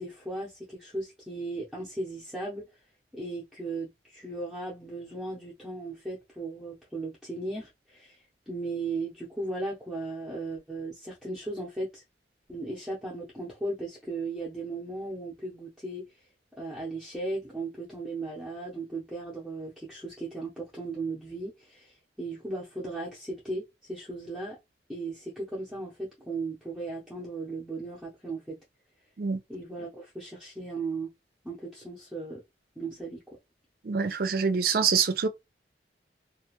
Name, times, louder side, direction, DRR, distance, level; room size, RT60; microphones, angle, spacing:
voice 1, 0.0-2.7 3.1-12.0 12.5-16.1 16.6-24.6 24.9-28.6 29.5-31.1 31.4-32.4 32.8-33.2, right 2 dB, ahead, 0.7 m, -36 dB
voice 2, 33.9-35.3, right 5 dB, 55° right, 0.5 m, -25 dB
2.4 x 2.3 x 2.9 m
head